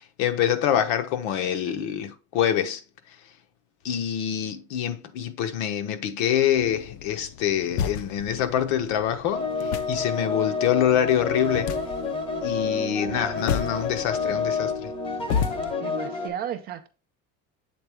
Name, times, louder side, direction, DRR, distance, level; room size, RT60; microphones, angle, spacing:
voice 1, 0.2-2.8 3.8-11.7 12.4-14.9, left 9 dB, 70° left, 0.9 m, -25 dB
sound 1, 6.6-15.7, left 7 dB, 50° left, 0.5 m, -34 dB
sound 2, 9.3-16.3, left 4 dB, 15° left, 0.7 m, -29 dB
voice 2, 15.8-16.9, right 9 dB, 30° right, 0.4 m, -34 dB
7.8 x 3.8 x 3.4 m
cardioid pair, 180°, 34 cm